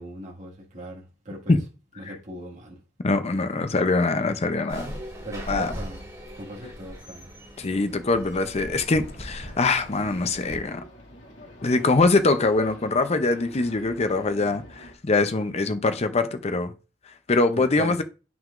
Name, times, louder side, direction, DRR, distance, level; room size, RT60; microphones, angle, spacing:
voice 1, 0.0-1.6 2.0-2.8 5.2-6.0 6.3-7.3 17.6-17.9, right 1 dB, 40° right, 2.0 m, -38 dB
voice 2, 3.0-4.9 5.5-5.7 7.6-10.8 11.6-16.7 17.3-18.0, left 3 dB, 35° left, 0.6 m, -23 dB
sound 1, 4.7-10.6, equal, 20° right, 2.9 m, -39 dB
sound 2, 8.4-14.9, left 1 dB, 75° left, 2.3 m, -46 dB
9.3 x 6.0 x 2.5 m
head